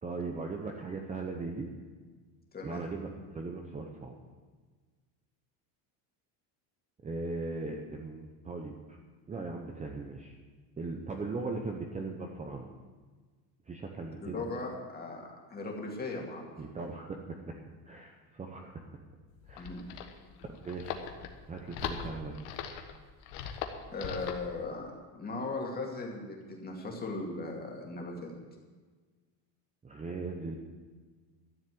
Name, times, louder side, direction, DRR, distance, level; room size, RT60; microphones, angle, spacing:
voice 1, 0.0-1.7 2.6-4.1 7.0-9.0 9.3-10.3 10.8-12.7 13.7-14.5 16.6-17.6 17.9-18.8 19.5-19.7 20.6-21.0 21.5-22.3 29.8-30.6, right 3 dB, 15° right, 2 dB, 0.8 m, -38 dB
voice 2, 2.5-2.8 14.2-16.5 19.6-19.9 23.9-28.3, left 3 dB, 20° left, -1 dB, 2.4 m, -38 dB
sound 1, 19.3-24.5, left 8 dB, 80° left, 1.5 m, -40 dB
13.0 x 7.3 x 7.8 m, 1.4 s
cardioid pair, 145°, 46 cm